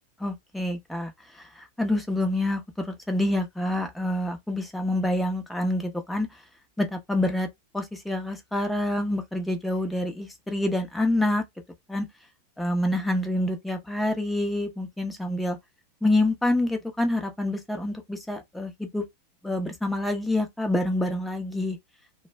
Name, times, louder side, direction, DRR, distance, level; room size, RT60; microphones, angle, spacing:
voice 1, 0.2-1.1 1.8-6.3 6.8-7.5 7.7-11.4 11.9-12.1 12.6-15.6 16.0-19.0 19.4-21.8, left 1 dB, 5° left, 0.7 m, -27 dB
2.2 x 2.0 x 3.3 m
supercardioid pair, 130°, 0 cm